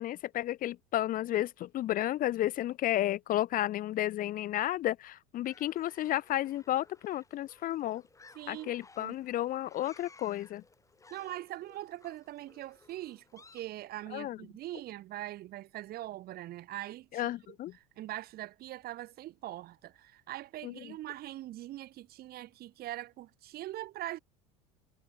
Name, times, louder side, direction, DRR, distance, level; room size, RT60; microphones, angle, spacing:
voice 1, 0.0-8.0 8.5-10.6 14.1-14.4 17.1-17.8 20.6-20.9, left 14 dB, 50° left, 0.8 m, -32 dB
sound 1, 5.4-13.6, left 3 dB, 15° left, 3.7 m, -59 dB
voice 2, 8.3-9.1 11.1-17.2 18.0-24.2, right 15 dB, 55° right, 2.1 m, -42 dB
supercardioid pair, 90°, 19 cm